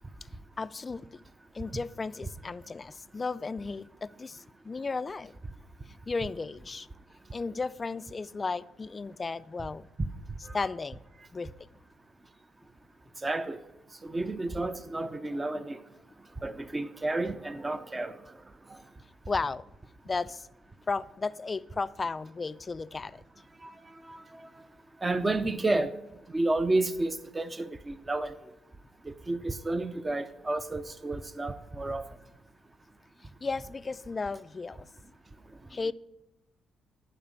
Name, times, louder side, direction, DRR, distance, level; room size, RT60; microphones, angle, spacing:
voice 1, 0.6-1.2 1.5-5.4 6.1-6.9 7.3-9.9 10.5-11.0 11.3-11.5 19.3-19.6 20.0-20.5 20.9-23.2 33.4-34.9 35.7-35.9, left 4 dB, 30° left, 0.3 m, -34 dB
voice 2, 13.2-13.6 14.0-15.8 16.4-18.2 23.6-23.7 24.1-24.2 25.0-25.9 26.3-28.3 29.1-32.1, right 2 dB, 20° right, 0.6 m, -31 dB
11.0 x 5.1 x 8.5 m
cardioid pair, 90°, 0 cm